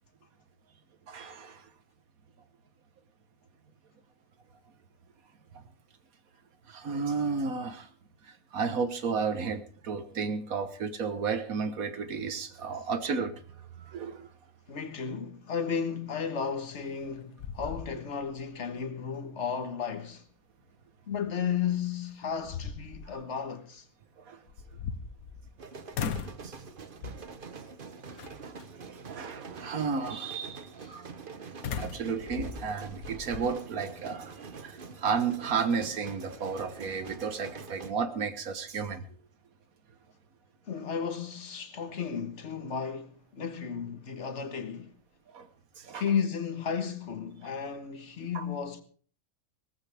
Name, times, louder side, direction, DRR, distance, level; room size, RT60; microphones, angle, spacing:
voice 1, 1.1-1.7 6.7-7.9 8.2-13.4 13.8-14.3 24.2-24.4 26.4-26.5 28.4-28.6 28.9-31.1 31.8-39.0 45.3-45.5 45.8-46.0 48.3-48.5, right 5 dB, 80° right, 1.7 m, -33 dB
voice 2, 14.7-20.2 21.1-23.8 40.7-44.9 45.9-48.8, left 7 dB, 55° left, 1.6 m, -33 dB
sound 1, 16.8-17.1 17.4-18.4 18.8-18.9 21.6-21.7 22.2-23.1 24.5-25.6 25.9-26.5 27.0-27.4 28.2-28.6 31.6-33.5, left 6 dB, 85° left, 1.5 m, -38 dB
sound 2, 25.6-37.9, right 5 dB, 40° right, 1.1 m, -45 dB
17.5 x 14.5 x 3.5 m
omnidirectional pair, 1.5 m